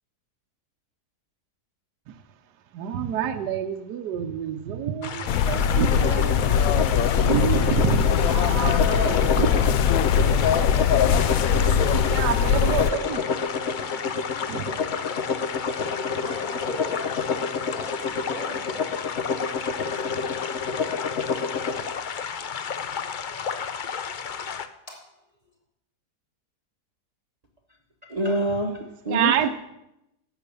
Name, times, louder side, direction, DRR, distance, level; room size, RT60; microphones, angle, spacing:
voice 1, 2.7-13.2 14.5-14.8 29.1-29.5, right 9 dB, 80° right, 7 dB, 1.3 m, -29 dB
sound 1, 5.0-24.7, left 7 dB, 85° left, 0.4 m, -33 dB
sound 2, 5.3-12.9, left 8 dB, 70° left, 0.9 m, -21 dB
sound 3, 5.8-21.8, left 5 dB, 50° left, 1.1 m, -29 dB
voice 2, 14.2-15.1 15.7-15.9 16.2-18.6 19.3-19.5 20.7-20.9 21.3-21.4 24.9-25.0, left 1 dB, 35° left, -2 dB, 3.6 m, -41 dB
voice 3, 28.1-29.5, right 1 dB, 30° right, 2 dB, 1.0 m, -26 dB
12.0 x 8.3 x 6.8 m, 0.86 s
omnidirectional pair, 1.8 m